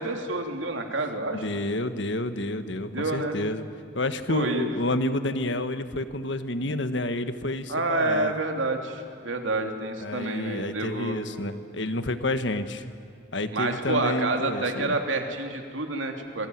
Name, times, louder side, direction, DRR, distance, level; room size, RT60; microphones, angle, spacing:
voice 1, 0.0-1.4 2.9-3.4 4.3-4.6 7.7-11.2 13.5-16.5, right 2 dB, 85° right, 3 dB, 3.2 m, -28 dB
voice 2, 1.3-3.6 3.9-8.3 10.0-12.9 13.3-15.0, left 2 dB, 70° left, 10 dB, 1.5 m, -29 dB
27.5 x 22.5 x 9.5 m, 2.4 s
head